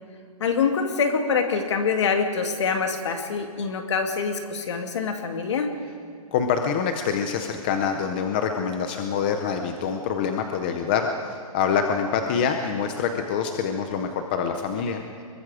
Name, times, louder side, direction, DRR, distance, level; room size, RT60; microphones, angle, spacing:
voice 1, 0.4-5.7, left 5 dB, 50° left, 5 dB, 2.3 m, -25 dB
voice 2, 6.3-15.0, left 6 dB, 15° left, 5 dB, 0.6 m, -25 dB
25.0 x 22.0 x 4.9 m, 2.4 s
hypercardioid pair, 180°, 19 cm